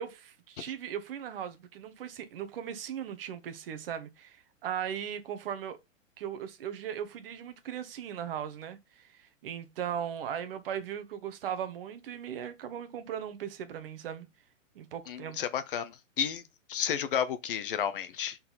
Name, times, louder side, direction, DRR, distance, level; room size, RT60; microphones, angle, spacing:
voice 1, 0.0-5.8 6.2-14.3 14.7-15.4, right 9 dB, 45° right, 1.1 m, -38 dB
voice 2, 15.1-16.4 16.7-18.4, left 8 dB, 45° left, 0.6 m, -31 dB
6.6 x 4.1 x 4.0 m
hypercardioid pair, 160°, 39 cm